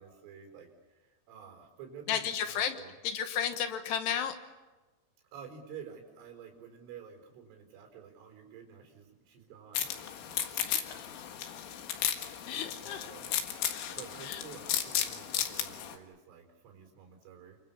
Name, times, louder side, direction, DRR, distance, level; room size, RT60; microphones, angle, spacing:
voice 1, 0.0-3.0 5.3-9.9 12.7-13.3 13.9-17.6, right 7 dB, 80° right, 4 dB, 6.8 m, -50 dB
voice 2, 2.1-2.7 3.0-4.3 10.7-11.2 12.5-13.1 14.3-14.4, left 8 dB, 70° left, 7 dB, 3.0 m, -33 dB
sound 1, 9.7-15.9, left 10 dB, 90° left, 4.2 m, -34 dB
29.0 x 23.0 x 7.2 m, 1.2 s
omnidirectional pair, 5.5 m